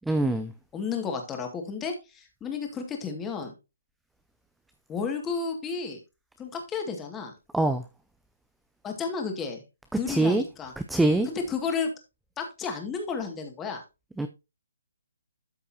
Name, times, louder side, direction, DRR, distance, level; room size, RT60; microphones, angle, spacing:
voice 1, 0.1-0.5 7.5-7.8 10.1-10.4 10.9-11.3 14.2-14.3, right 2 dB, 5° right, 0.5 m, -23 dB
voice 2, 0.7-3.5 4.9-6.0 6.4-7.3 8.8-9.6 10.0-10.7 11.2-11.9 12.4-13.8, left 5 dB, 15° left, 2.0 m, -32 dB
13.0 x 5.4 x 2.8 m
hypercardioid pair, 155°, 0 cm